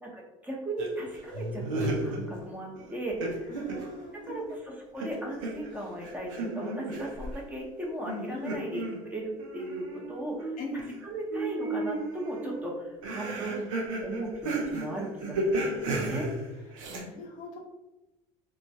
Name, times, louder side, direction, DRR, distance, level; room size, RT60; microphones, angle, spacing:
voice 1, 0.0-3.5 4.2-13.7 14.0-16.3, right 1 dB, 10° right, -2 dB, 0.8 m, -37 dB
sound 1, 0.8-2.5 2.8-4.6 5.0-7.4 8.1-11.0 11.3-17.0, right 2 dB, 90° right, 0.6 m, -34 dB
voice 2, 3.5-4.5 8.3-8.6 10.6-10.9 16.9-17.6, left 2 dB, 55° left, 0 dB, 0.7 m, -40 dB
3.0 x 2.2 x 2.6 m, 1.0 s
supercardioid pair, 80°, 16 cm